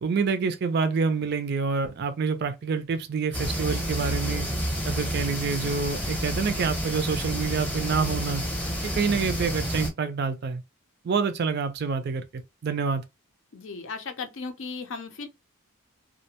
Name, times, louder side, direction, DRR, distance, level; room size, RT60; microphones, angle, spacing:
voice 1, 0.0-4.5 4.8-8.4 8.8-10.6 11.0-13.0, right 5 dB, 50° right, 0.4 m, -27 dB
sound 1, 3.3-9.9, equal, 5° left, 0.7 m, -30 dB
voice 2, 13.5-15.3, left 4 dB, 60° left, 0.5 m, -36 dB
2.4 x 2.1 x 2.7 m
head